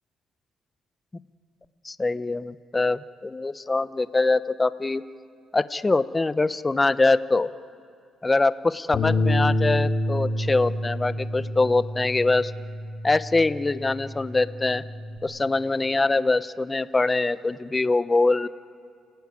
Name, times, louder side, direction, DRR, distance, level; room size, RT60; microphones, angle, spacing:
voice 1, 1.8-5.0 5.5-7.5 8.2-12.5 13.0-14.8 15.2-18.5, left 3 dB, 20° left, 14 dB, 0.7 m, -23 dB
Bass guitar, 8.9-15.2, left 1 dB, 50° left, 3.0 m, -28 dB
29.5 x 17.5 x 9.5 m, 2.4 s
cardioid pair, 90°, 0 cm